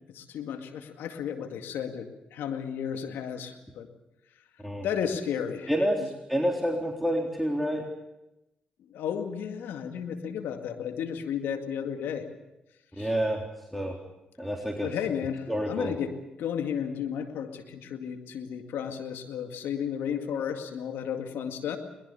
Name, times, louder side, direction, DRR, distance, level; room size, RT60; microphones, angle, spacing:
voice 1, 0.1-3.9 4.8-5.7 6.0-6.1 8.9-12.3 13.0-13.1 14.8-21.8, left 8 dB, 80° left, 6 dB, 2.1 m, -33 dB
voice 2, 5.7-7.8 13.0-13.4 13.7-14.0 14.4-14.9 15.5-15.9, equal, ahead, 0 dB, 3.7 m, -28 dB
22.5 x 20.5 x 7.0 m, 0.93 s
hypercardioid pair, 45°, 4 cm